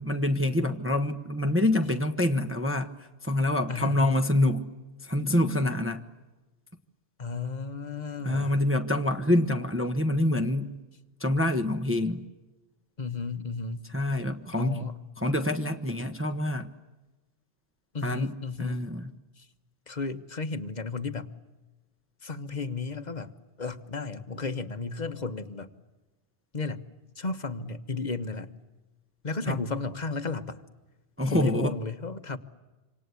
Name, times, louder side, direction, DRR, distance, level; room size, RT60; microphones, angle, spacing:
voice 1, 0.0-4.7 5.0-6.0 8.2-10.8 11.2-12.2 13.9-14.9 15.2-16.7 18.0-19.1 29.5-29.6 31.2-31.8, left 1 dB, 10° right, 1.1 m, -26 dB
voice 2, 3.7-4.0 7.2-8.6 13.0-13.9 14.5-15.0 17.9-18.8 19.4-19.5 19.9-21.3 22.2-25.7 26.5-26.8 27.2-28.5 29.2-30.6 31.3-32.4, left 3 dB, 40° left, 1.3 m, -34 dB
27.0 x 26.5 x 8.3 m
omnidirectional pair, 1.2 m